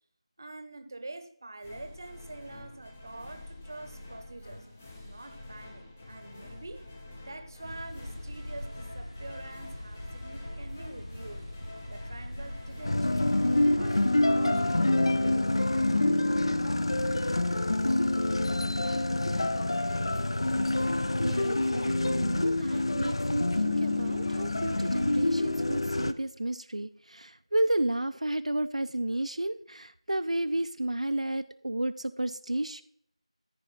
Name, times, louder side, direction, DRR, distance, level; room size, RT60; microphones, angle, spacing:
voice 1, 0.4-4.7 5.0-6.9 7.2-11.5 11.9-13.5 13.8-14.9 15.2-15.8, right 2 dB, 35° right, 8 dB, 0.8 m, -45 dB
sound 1, 1.6-15.2, left 2 dB, 15° left, 0.6 m, -47 dB
sound 2, 7.6-13.1, left 1 dB, 70° left, 4.2 m, -42 dB
sound 3, 12.8-26.1, left 2 dB, 55° left, 0.5 m, -27 dB
voice 2, 21.2-32.8, right 1 dB, 90° right, 10 dB, 0.5 m, -32 dB
14.0 x 4.9 x 4.1 m, 0.66 s
figure-of-eight pair, 175°, 3 cm